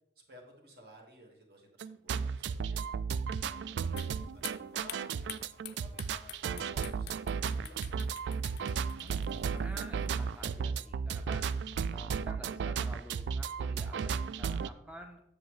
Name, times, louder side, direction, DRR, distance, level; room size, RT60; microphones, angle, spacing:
voice 1, 0.3-2.8 3.6-4.1 4.3-5.2 5.8-6.4 6.7-8.1, equal, 60° right, 1 dB, 1.5 m, -55 dB
sound 1, 1.8-14.7, right 6 dB, 80° right, 0.3 m, -34 dB
sound 2, 4.0-10.5, left 12 dB, 65° left, 0.4 m, -49 dB
voice 2, 9.0-11.5 11.9-15.2, equal, 5° right, 3 dB, 0.5 m, -50 dB
7.9 x 6.7 x 3.1 m, 0.79 s
head